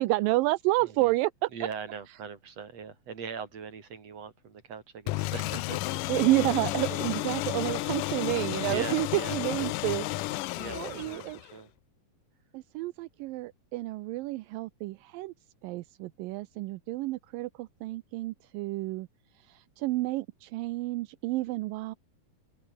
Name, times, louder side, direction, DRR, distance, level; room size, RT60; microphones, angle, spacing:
voice 1, 0.0-1.5 6.1-10.4 10.7-11.4 12.5-15.3 15.6-19.1 19.5-22.0, right 19 dB, 80° right, 2.4 m, -30 dB
voice 2, 0.8-1.1 1.5-6.0 8.7-9.7 10.5-11.7, right 6 dB, 45° right, 4.5 m, -41 dB
sound 1, 5.1-11.6, left 18 dB, 75° left, 2.2 m, -32 dB
open air
omnidirectional pair, 4.0 m